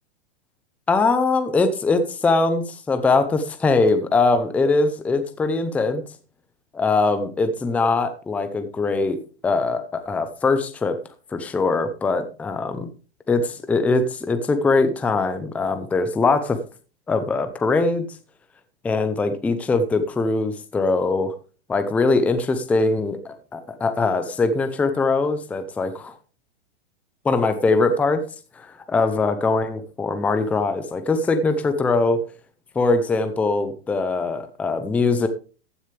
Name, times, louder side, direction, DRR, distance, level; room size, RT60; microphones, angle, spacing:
voice 1, 0.9-6.0 6.7-9.2 9.4-11.0 11.3-12.9 13.3-16.6 17.1-18.1 18.8-21.3 21.7-26.1 27.2-28.2 28.6-32.2 32.7-35.3, left 3 dB, 5° left, 9 dB, 0.6 m, -22 dB
14.5 x 9.9 x 3.3 m, 0.36 s
hypercardioid pair, 160°, 33 cm